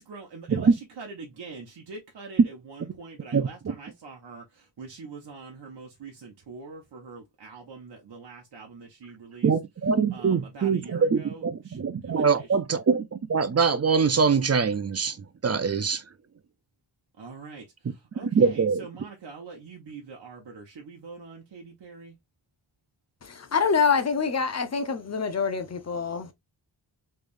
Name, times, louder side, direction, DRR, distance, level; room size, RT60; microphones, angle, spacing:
voice 1, 0.0-9.5 10.1-12.5 17.2-22.2, right 4 dB, 65° right, 1.0 m, -44 dB
voice 2, 9.4-15.2 15.4-16.0 18.3-18.8, right 5 dB, 35° right, 0.5 m, -23 dB
voice 3, 23.2-26.3, left 5 dB, 35° left, 0.7 m, -26 dB
3.5 x 3.3 x 2.5 m
wide cardioid pair, 130°, 44 cm